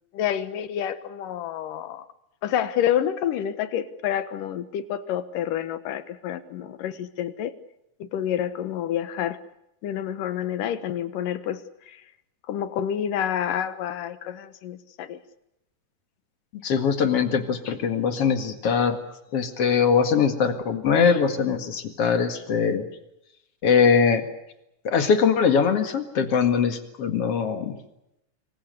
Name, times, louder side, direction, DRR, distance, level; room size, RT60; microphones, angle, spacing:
voice 1, 0.1-2.1 2.4-7.5 8.0-9.4 9.8-12.0 12.5-15.2, left 10 dB, 90° left, 12 dB, 2.9 m, -28 dB
voice 2, 16.6-19.0 19.3-22.9 23.6-24.3 24.8-27.8, left 6 dB, 50° left, 7 dB, 2.7 m, -22 dB
25.5 x 25.0 x 6.7 m, 0.85 s
omnidirectional pair, 3.7 m